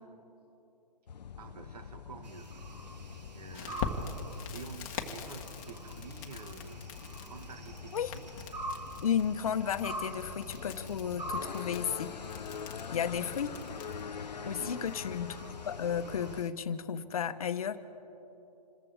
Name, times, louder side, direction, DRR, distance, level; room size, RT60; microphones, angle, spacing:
sound 1, 1.1-16.4, left 7 dB, 85° left, 0.6 m, -45 dB
voice 1, 1.4-2.5 3.3-8.4 14.4-14.9, right 5 dB, 65° right, 7 dB, 1.8 m, -49 dB
sound 2, 2.2-16.5, right 1 dB, 90° right, 1.9 m, -46 dB
Crackle, 3.5-14.1, left 6 dB, 25° left, 1.4 m, -44 dB
voice 2, 9.0-12.1 12.9-13.5 14.4-17.8, left 8 dB, 60° left, 10 dB, 1.1 m, -33 dB
27.5 x 14.5 x 3.6 m, 3.0 s
hypercardioid pair, 150°, 21 cm